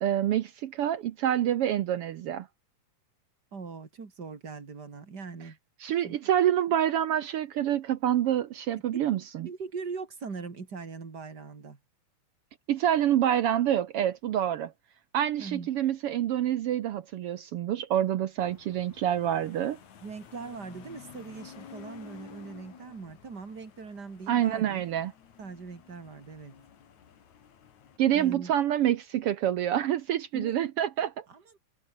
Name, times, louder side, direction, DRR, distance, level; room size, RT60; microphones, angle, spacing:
voice 1, 0.0-2.5 5.8-9.5 12.7-14.7 15.1-19.8 24.3-25.1 28.0-31.1, right 11 dB, 70° right, 1.4 m, -27 dB
voice 2, 3.5-5.6 6.0-6.2 8.9-9.0 9.4-11.8 15.4-15.7 20.0-24.8 25.4-26.6 28.1-28.5 30.3-30.5 31.3-31.6, right 4 dB, 35° right, 3.3 m, -41 dB
sound 1, 18.4-28.0, left 8 dB, 70° left, 3.8 m, -52 dB
omnidirectional pair, 3.5 m